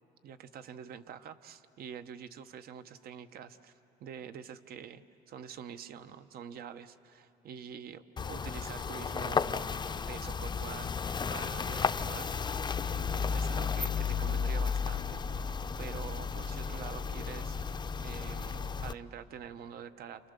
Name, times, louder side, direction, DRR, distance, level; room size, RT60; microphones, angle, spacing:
voice 1, 0.2-3.7 4.0-9.7 10.1-12.3 12.9-15.4 15.8-20.3, right 8 dB, 65° right, 10 dB, 1.0 m, -46 dB
sound 1, 8.2-18.9, left 6 dB, 25° left, 0.6 m, -33 dB
29.5 x 29.0 x 6.8 m, 2.9 s
cardioid pair, 110°, 17 cm